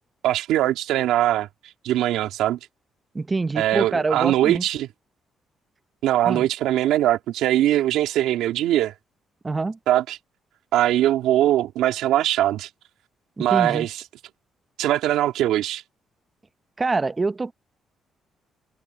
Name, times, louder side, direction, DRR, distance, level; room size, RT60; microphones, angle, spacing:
voice 1, 0.2-1.5 1.8-2.6 3.6-4.9 6.0-8.9 9.9-10.2 10.7-12.7 13.4-14.0 14.8-15.8, right 13 dB, 90° right, 2.6 m, -21 dB
voice 2, 3.1-4.6 6.2-6.5 9.4-9.8 13.4-13.9 16.8-17.5, right 3 dB, 25° right, 1.0 m, -25 dB
cardioid pair, 90°, 0 cm